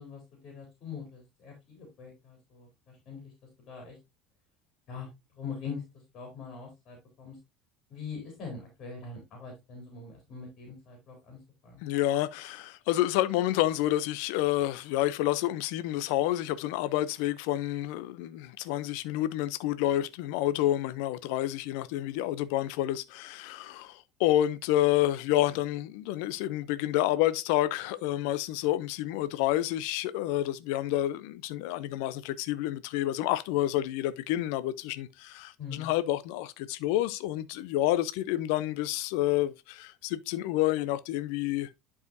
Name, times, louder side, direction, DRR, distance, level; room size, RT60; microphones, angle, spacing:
voice 1, 0.0-3.3 3.7-4.0 4.9-5.1 5.3-5.8 6.1-7.4 7.9-11.8 35.6-35.9, left 5 dB, 40° left, 3.4 m, -43 dB
voice 2, 11.8-41.8, left 14 dB, 75° left, 0.5 m, -29 dB
11.0 x 4.8 x 2.5 m
cardioid pair, 150°, 0 cm